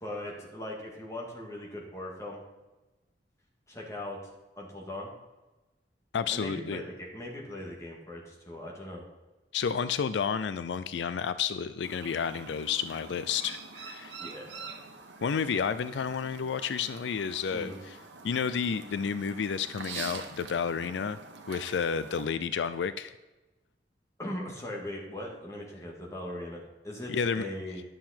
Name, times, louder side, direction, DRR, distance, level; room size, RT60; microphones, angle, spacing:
voice 1, 0.0-2.4 3.7-4.2 4.6-5.1 6.3-9.0 14.2-14.8 15.5-15.6 17.5-17.8 24.2-27.8, left 1 dB, 15° left, -3 dB, 2.1 m, -39 dB
voice 2, 6.1-6.8 9.5-14.1 15.2-17.9 18.2-21.2 21.5-23.1 27.1-27.5, left 6 dB, 85° left, 13 dB, 0.4 m, -31 dB
Chirp tweet, 11.8-22.2, right 5 dB, 85° right, 1.1 m, -45 dB
11.0 x 7.5 x 4.4 m, 1.1 s
head